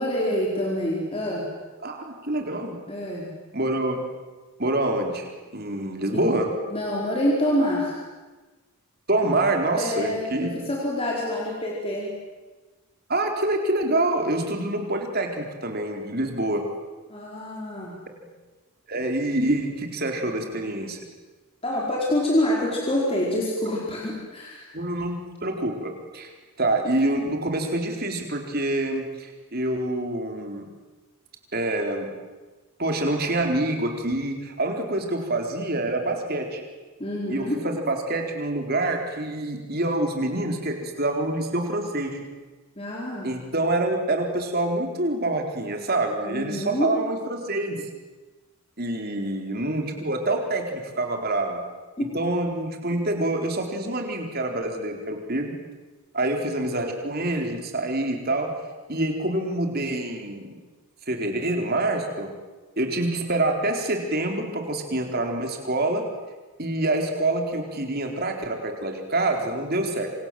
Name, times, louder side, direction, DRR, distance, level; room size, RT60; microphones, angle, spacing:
voice 1, 0.0-1.5 2.9-3.3 6.1-6.2 6.7-8.0 9.8-12.1 17.1-18.2 21.6-24.7 37.0-37.6 42.8-43.3 46.3-46.9 52.0-52.1, left 1 dB, 25° left, -3 dB, 4.7 m, -26 dB
voice 2, 1.8-2.8 3.5-4.0 4.6-5.3 5.5-6.5 9.1-10.5 13.1-16.7 18.9-21.0 24.7-26.3 26.6-30.7 31.5-32.1 32.8-36.6 37.3-42.2 43.2-47.9 48.8-51.6 52.1-55.5 56.1-58.6 58.9-60.6 61.1-62.3 62.8-66.0 66.6-70.1, right 2 dB, 45° right, 3 dB, 4.2 m, -26 dB
27.5 x 26.5 x 7.8 m, 1.3 s
head